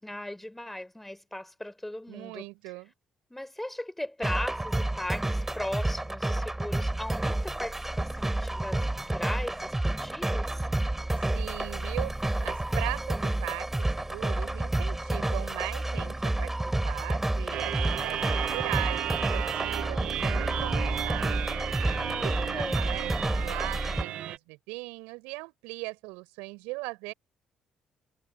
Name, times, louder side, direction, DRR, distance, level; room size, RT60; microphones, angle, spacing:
voice 1, 0.0-2.5 3.3-10.7 21.8-23.0, left 1 dB, 10° left, 4.9 m, -38 dB
voice 2, 2.1-2.9 11.1-12.1 12.4-16.5 16.8-21.4 22.2-27.1, right 26 dB, 85° right, 6.6 m, -39 dB
sound 1, 4.2-24.0, right 1 dB, 15° right, 4.6 m, -30 dB
sound 2, 17.5-24.4, right 11 dB, 70° right, 1.4 m, -34 dB
hypercardioid pair, 55°, 2 cm